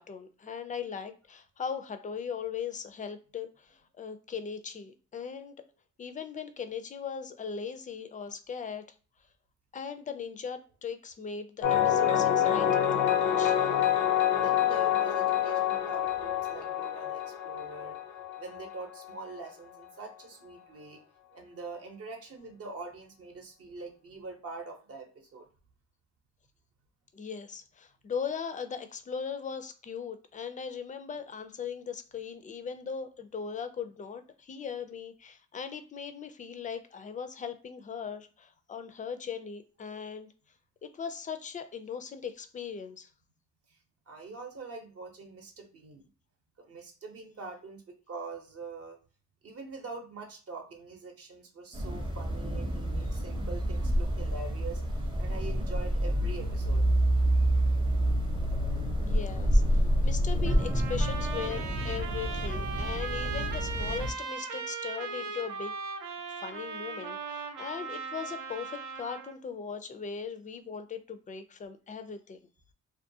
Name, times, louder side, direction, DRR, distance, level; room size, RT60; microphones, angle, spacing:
voice 1, 0.0-5.6 6.0-8.8 9.7-13.6 27.1-40.3 40.8-43.1 59.0-65.7 66.4-72.4, left 6 dB, 25° left, 0.3 m, -39 dB
sound 1, 11.6-19.1, left 10 dB, 80° left, 0.5 m, -27 dB
voice 2, 14.2-18.0 18.4-21.0 21.3-25.5 43.7-43.8 44.1-46.1 46.6-47.8 48.1-49.0 49.4-54.8 55.2-56.9, right 3 dB, 50° right, 0.7 m, -44 dB
sound 2, 51.7-64.1, equal, 15° right, 0.6 m, -28 dB
Trumpet, 60.5-69.4, right 5 dB, 85° right, 0.5 m, -38 dB
2.3 x 2.2 x 2.6 m
cardioid pair, 90°, 30 cm